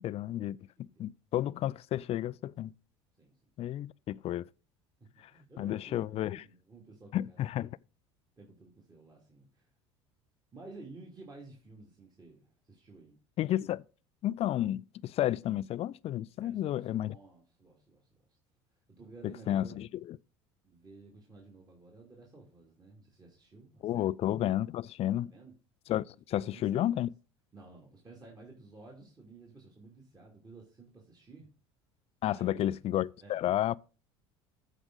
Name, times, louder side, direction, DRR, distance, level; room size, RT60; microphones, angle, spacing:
voice 1, 0.0-2.7 3.6-4.5 5.6-6.4 7.1-7.8 13.4-13.8 14.2-17.2 19.2-20.2 23.8-25.3 25.9-27.1 32.2-33.8, left 13 dB, 40° left, 0.4 m, -32 dB
voice 2, 3.2-3.5 5.3-7.4 8.4-9.7 10.5-13.2 16.4-18.1 19.0-19.8 20.6-24.1 25.2-25.5 26.3-27.1 27.5-31.5 32.3-32.7 33.2-33.5, right 3 dB, 25° right, 2.8 m, -53 dB
14.5 x 5.0 x 4.0 m
hypercardioid pair, 75°, 15 cm